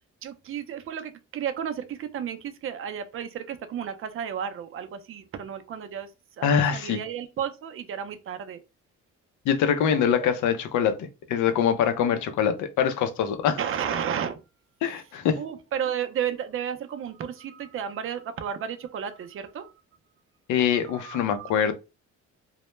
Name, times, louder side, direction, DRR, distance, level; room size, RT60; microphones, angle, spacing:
voice 1, 0.2-6.1 6.4-8.6 9.8-10.3 13.5-14.4 15.3-19.7 20.9-21.7, right 8 dB, 45° right, 0.4 m, -33 dB
voice 2, 6.4-7.0 9.5-13.6 14.8-15.4 20.5-21.7, left 8 dB, 75° left, 0.5 m, -24 dB
2.1 x 2.1 x 3.0 m
cardioid pair, 90°, 30 cm